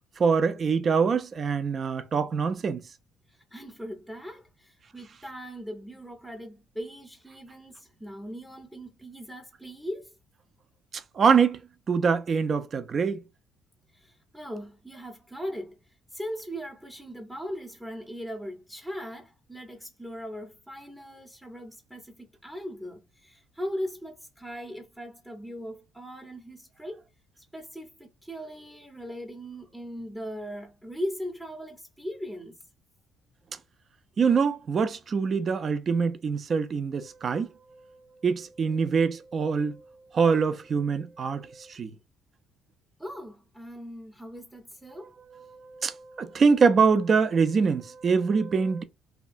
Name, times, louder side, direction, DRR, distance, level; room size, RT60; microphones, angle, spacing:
voice 1, 0.2-2.8 10.9-11.6 11.9-13.2 34.2-37.5 38.2-39.8 40.1-41.9 45.5-48.8, right 5 dB, 40° right, 0.4 m, -24 dB
voice 2, 3.3-10.1 13.9-15.8 16.1-27.0 27.4-32.5 43.0-45.2, equal, 5° right, 0.7 m, -39 dB
2.8 x 2.2 x 2.5 m
cardioid pair, 105°, 0 cm